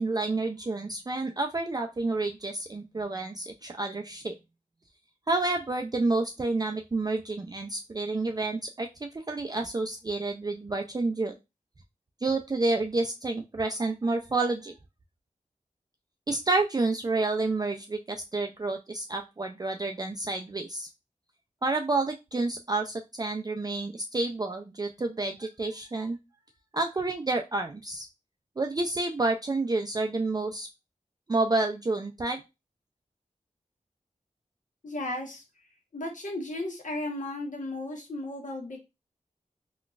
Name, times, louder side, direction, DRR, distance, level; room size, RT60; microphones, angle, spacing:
voice 1, 0.0-4.3 5.3-11.3 12.2-14.7 16.3-20.9 21.6-26.2 26.7-28.1 28.6-30.7 31.3-32.4, right 3 dB, 30° right, 3 dB, 0.4 m, -29 dB
voice 2, 34.8-35.4 35.9-38.8, left 1 dB, 65° left, 1 dB, 1.1 m, -35 dB
3.8 x 2.3 x 2.4 m, 0.24 s
wide cardioid pair, 50°, 14 cm